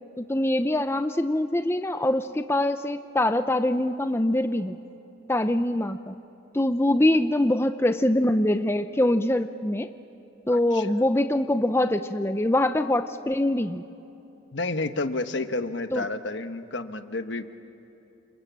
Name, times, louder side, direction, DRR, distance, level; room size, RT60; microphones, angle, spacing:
voice 1, 0.2-4.8 5.3-6.1 6.5-9.9 10.5-13.8 15.9-16.0, left 1 dB, 15° left, 9 dB, 0.6 m, -24 dB
voice 2, 10.7-11.1 14.5-17.5, left 2 dB, 75° left, 9 dB, 1.2 m, -30 dB
29.5 x 27.5 x 7.5 m, 3.0 s
head